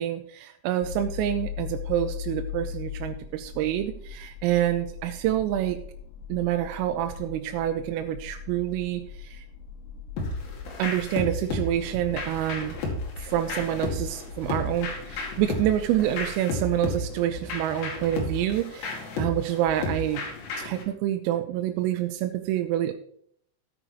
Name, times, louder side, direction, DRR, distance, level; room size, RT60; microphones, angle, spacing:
voice 1, 0.0-5.8 6.3-9.4 10.8-12.8 13.3-20.2 20.6-22.9, right 12 dB, 90° right, 6 dB, 3.3 m, -27 dB
sound 1, 0.8-16.3, left 8 dB, 90° left, 2.5 m, -40 dB
sound 2, 10.2-20.8, left 2 dB, 55° left, 3.4 m, -33 dB
13.0 x 9.1 x 3.1 m, 0.63 s
omnidirectional pair, 6.0 m